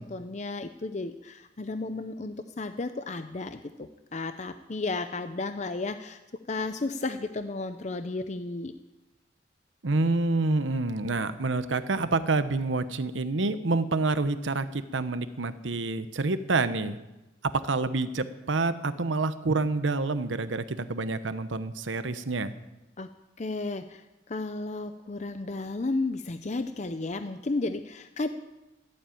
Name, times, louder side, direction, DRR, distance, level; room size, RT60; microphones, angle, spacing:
voice 1, 0.0-6.2 6.5-8.7 23.0-23.1 23.4-28.3, left 3 dB, 40° left, 9 dB, 0.6 m, -33 dB
voice 2, 9.8-17.0 17.5-22.5, right 3 dB, 90° right, 12 dB, 0.9 m, -28 dB
14.5 x 8.8 x 9.1 m, 1.0 s
head